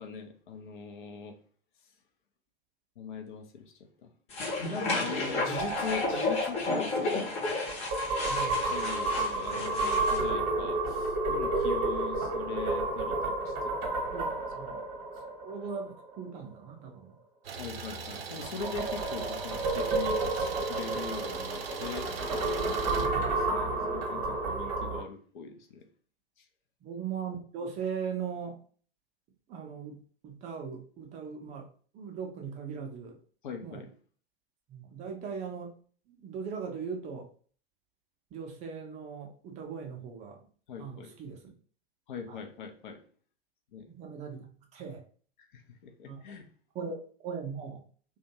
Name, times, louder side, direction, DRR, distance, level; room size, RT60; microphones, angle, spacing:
voice 1, 0.0-1.4 3.0-4.1 4.7-7.2 8.7-13.9 14.7-14.8 17.6-22.1 22.9-25.9 26.4-26.5 33.4-33.9 40.7-41.1 42.1-43.0 43.7-43.9 45.5-46.5, left 6 dB, 55° left, 5 dB, 0.6 m, -41 dB
sound 1, 4.3-10.2, left 3 dB, 20° left, 0.7 m, -32 dB
voice 2, 5.1-5.6 8.1-8.7 14.1-14.7 15.4-17.1 22.9-23.2 26.8-28.6 29.5-31.7 31.9-33.2 33.6-33.8 34.7-35.8 36.1-37.3 38.3-40.5 40.8-41.4 42.3-42.4 43.9-44.5 44.7-45.0 46.1-46.2 46.7-47.8, right 6 dB, 25° right, 2 dB, 0.5 m, -39 dB
sound 2, 5.6-16.2 18.1-25.0, right 2 dB, 40° right, 0.9 m, -31 dB
Idling, 17.4-23.1, right 5 dB, 80° right, 0.5 m, -41 dB
2.5 x 2.2 x 2.8 m, 0.43 s
figure-of-eight pair, 90°, 30 cm